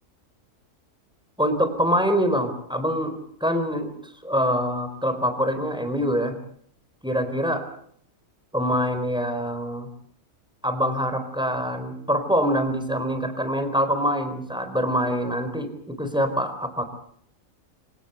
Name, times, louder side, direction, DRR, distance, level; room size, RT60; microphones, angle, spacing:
voice 1, 1.4-6.4 7.0-7.6 8.5-9.9 10.6-16.8, equal, 5° right, 8 dB, 4.3 m, -25 dB
27.0 x 17.5 x 8.1 m, 0.64 s
omnidirectional pair, 1.4 m